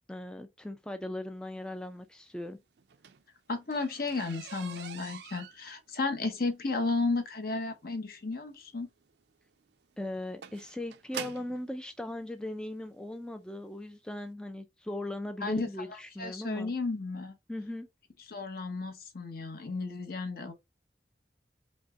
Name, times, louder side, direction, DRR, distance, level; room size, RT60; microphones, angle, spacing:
voice 1, 0.1-2.6 10.0-16.7 17.5-17.9, left 1 dB, 5° left, 0.3 m, -39 dB
sound 1, 2.8-11.7 12.6-12.7 13.2-13.4 13.7-13.8 14.1-14.2, right 8 dB, 65° right, 0.4 m, -46 dB
voice 2, 3.5-8.9 15.4-17.3 18.3-20.5, left 3 dB, 55° left, 0.9 m, -33 dB
5.2 x 2.1 x 3.5 m
head